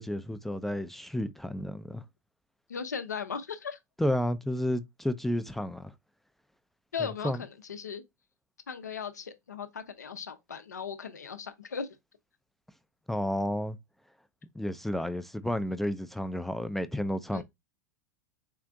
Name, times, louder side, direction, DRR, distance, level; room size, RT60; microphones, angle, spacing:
voice 1, 0.0-2.0 4.0-5.9 7.2-7.4 13.1-13.8 14.5-17.4, left 1 dB, ahead, 0.3 m, -31 dB
voice 2, 2.7-3.8 6.9-8.0 8.7-12.0 17.3-17.4, left 6 dB, 80° left, 0.6 m, -37 dB
3.8 x 2.5 x 3.4 m
figure-of-eight pair, 90°, 9 cm